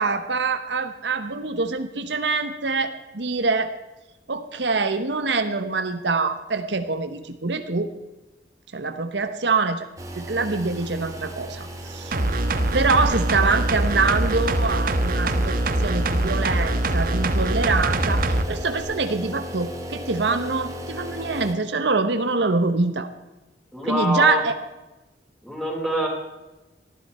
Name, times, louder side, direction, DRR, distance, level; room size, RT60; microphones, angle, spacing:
voice 1, 0.0-3.7 4.3-7.9 8.7-9.9 10.1-12.2 12.7-15.5 15.8-23.1 23.9-24.5, right 4 dB, 80° right, 9 dB, 1.2 m, -24 dB
sound 1, 10.0-21.5, equal, 20° right, 2.2 m, -35 dB
sound 2, 12.1-18.4 18.8-18.9, right 1 dB, 55° right, 1.1 m, -23 dB
voice 2, 23.7-24.4 25.4-26.1, equal, 5° left, -2 dB, 4.9 m, -25 dB
19.5 x 13.5 x 4.4 m, 1.0 s
head